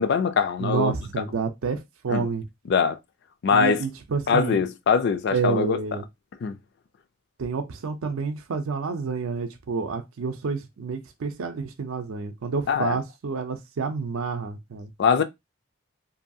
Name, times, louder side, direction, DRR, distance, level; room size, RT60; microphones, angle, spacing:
voice 1, 0.0-1.0 2.1-2.3 2.7-3.0 3.4-3.8 4.3-5.8 6.4-6.5 12.7-13.0 15.0-15.2, left 6 dB, 50° left, 0.3 m, -22 dB
voice 2, 0.6-2.4 3.5-4.6 5.3-6.0 7.4-14.9, right 5 dB, 75° right, 0.5 m, -29 dB
2.7 x 2.3 x 2.6 m
head